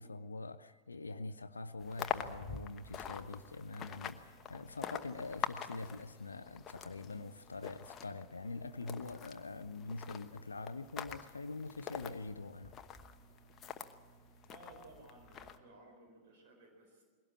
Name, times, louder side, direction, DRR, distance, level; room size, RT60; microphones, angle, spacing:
voice 1, 0.0-12.8, left 3 dB, 75° left, 0.6 m, -44 dB
Microwave oven, 0.6-15.7, right 3 dB, 80° right, 2.6 m, -63 dB
sound 1, 1.8-13.9 14.4-15.6, left 8 dB, 25° left, 1.1 m, -45 dB
voice 2, 14.5-17.0, right 2 dB, 50° right, 4.2 m, -58 dB
21.0 x 17.5 x 8.5 m
figure-of-eight pair, 90°, 0 cm